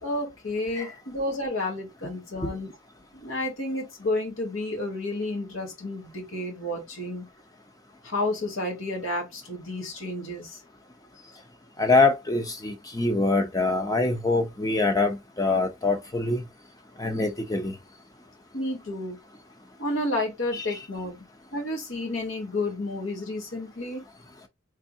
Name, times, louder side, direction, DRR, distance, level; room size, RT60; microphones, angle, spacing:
voice 1, 0.0-2.7 3.1-7.3 8.0-10.6 18.5-19.2 19.8-24.0, left 2 dB, 85° left, 2.1 m, -31 dB
voice 2, 11.8-16.4 17.0-17.7 20.5-20.8, left 3 dB, 20° left, 0.6 m, -24 dB
3.4 x 3.4 x 2.7 m
head